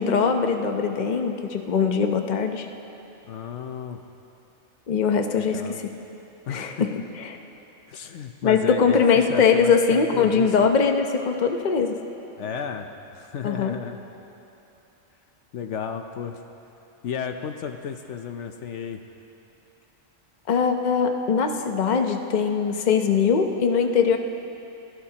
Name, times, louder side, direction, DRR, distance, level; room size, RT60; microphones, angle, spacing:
voice 1, 0.0-2.7 4.9-5.6 6.5-6.9 7.2-7.4 8.4-12.0 13.4-13.8 20.5-24.2, left 6 dB, 40° left, 5 dB, 0.9 m, -21 dB
voice 2, 3.3-4.0 5.4-5.8 6.5-6.9 7.9-10.7 12.4-14.0 15.5-16.4 17.0-19.0, left 7 dB, 70° left, 6 dB, 1.0 m, -33 dB
25.5 x 16.0 x 2.9 m, 2.9 s
omnidirectional pair, 1.3 m